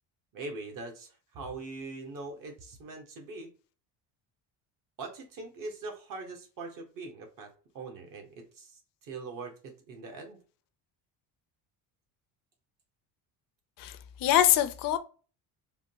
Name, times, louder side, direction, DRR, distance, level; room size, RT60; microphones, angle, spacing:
voice 1, 0.3-3.5 5.0-10.4, right 3 dB, 50° right, 1.1 m, -42 dB
voice 2, 13.8-15.0, left 12 dB, 55° left, 0.5 m, -24 dB
3.6 x 2.2 x 2.7 m
cardioid pair, 155°, 41 cm